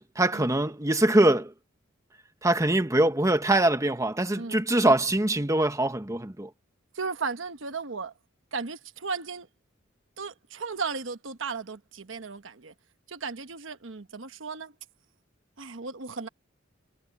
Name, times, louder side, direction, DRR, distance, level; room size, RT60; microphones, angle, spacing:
voice 1, 0.0-1.5 2.4-6.5, right 1 dB, 15° right, 1.2 m, -23 dB
voice 2, 6.9-8.1 8.5-9.5 10.2-12.7 13.1-14.7 15.6-16.3, right 4 dB, 70° right, 1.2 m, -35 dB
head